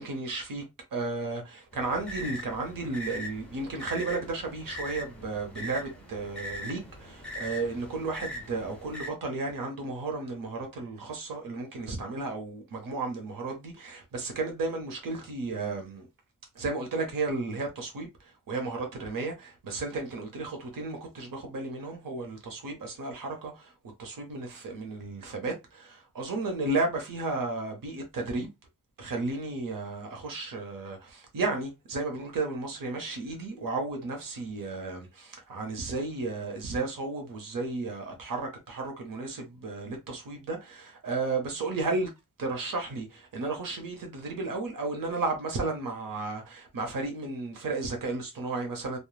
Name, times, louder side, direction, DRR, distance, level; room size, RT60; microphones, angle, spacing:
voice 1, 0.0-0.6 0.9-16.1 16.5-23.7 24.0-28.5 29.0-42.1 42.4-49.0, right 3 dB, 80° right, 0.9 m, -33 dB
sound 1, 1.7-9.1, left 1 dB, 5° left, 1.1 m, -41 dB
3.1 x 2.2 x 2.2 m
wide cardioid pair, 115°, 33 cm